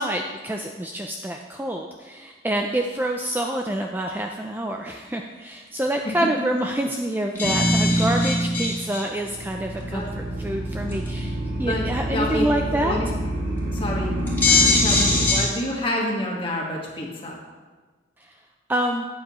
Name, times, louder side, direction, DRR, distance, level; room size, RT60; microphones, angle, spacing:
voice 1, 0.0-13.0 18.2-18.4 18.7-19.0, right 1 dB, 10° right, 2 dB, 0.3 m, -27 dB
sound 1, 6.7-6.8 7.0-7.1 7.3-9.0 9.8-9.9 10.9-11.2 13.3-13.4 13.8-13.9 14.3-15.5, left 3 dB, 10° left, 2.0 m, -22 dB
sound 2, 7.4-8.9 9.1-15.3, right 1 dB, 50° right, 1.5 m, -26 dB
voice 2, 9.8-10.1 11.6-11.8 12.1-12.5 12.7-13.1 13.7-17.4, left 1 dB, 25° left, -2 dB, 1.6 m, -28 dB
12.0 x 8.7 x 3.1 m, 1.4 s
head